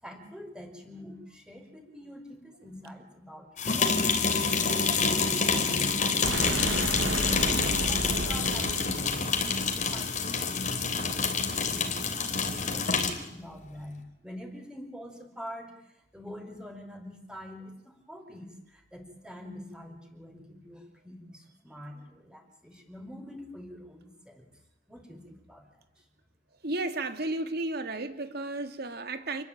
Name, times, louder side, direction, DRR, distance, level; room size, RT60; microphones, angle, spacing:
voice 1, 0.0-4.2 4.6-15.7 16.1-24.5 24.9-25.7 26.0-26.1, equal, 5° right, 3 dB, 5.3 m, -45 dB
sound 1, 3.6-13.2, left 5 dB, 40° left, 3.6 m, -27 dB
sound 2, 6.2-10.2, right 2 dB, 75° right, 1.5 m, -33 dB
voice 2, 26.6-29.4, right 2 dB, 55° right, 8 dB, 2.5 m, -33 dB
29.0 x 21.0 x 8.9 m, 0.87 s
head